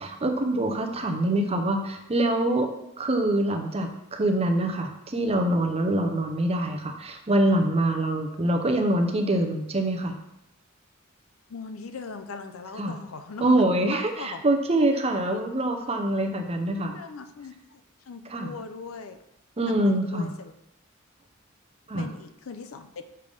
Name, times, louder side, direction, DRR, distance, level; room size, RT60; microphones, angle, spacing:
voice 1, 0.0-2.7 3.0-10.2 12.8-12.9 13.4-16.9 18.3-18.5 19.6-20.3 21.9-22.1, right 1 dB, 30° right, 5 dB, 0.6 m, -25 dB
voice 2, 11.5-13.6 13.9-14.4 15.3-15.4 16.8-17.8 18.1-19.2 19.7-20.5 22.0-23.0, left 5 dB, 70° left, 9 dB, 0.5 m, -40 dB
6.7 x 3.4 x 5.2 m, 0.83 s
head